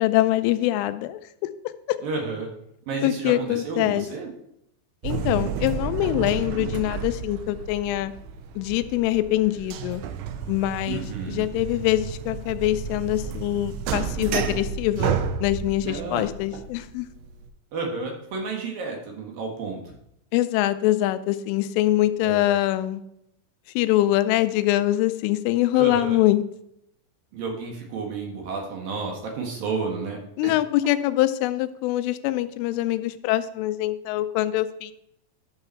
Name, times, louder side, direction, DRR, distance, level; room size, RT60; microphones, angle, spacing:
voice 1, 0.0-1.5 3.0-4.1 5.0-8.1 8.6-10.0 10.5-17.1 20.3-23.0 23.8-26.4 30.4-34.9, left 15 dB, 85° left, 12 dB, 3.1 m, -24 dB
voice 2, 2.0-2.5 2.9-4.3 10.9-11.5 15.8-16.2 17.7-19.9 22.2-22.5 25.8-26.2 27.3-30.5, right 4 dB, 60° right, 1 dB, 2.7 m, -31 dB
sound 1, 5.0-17.5, right 7 dB, 85° right, 2.4 m, -31 dB
11.5 x 6.8 x 4.5 m, 0.78 s
omnidirectional pair, 5.6 m